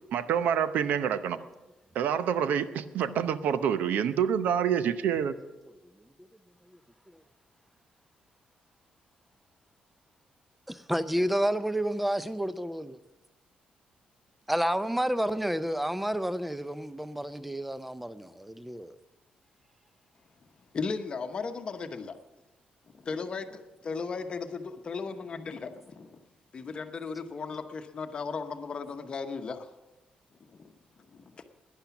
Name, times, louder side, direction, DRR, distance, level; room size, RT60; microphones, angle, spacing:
voice 1, 0.1-1.4 1.9-5.3, right 8 dB, 80° right, 0.7 m, -27 dB
voice 2, 10.7-13.0 14.5-19.0, equal, 5° right, 0.5 m, -30 dB
voice 3, 20.7-22.2 23.0-26.2 26.5-29.7 30.5-30.7 31.1-31.4, left 4 dB, 35° left, 0.9 m, -36 dB
11.5 x 10.5 x 7.1 m
cardioid pair, 135°, 3 cm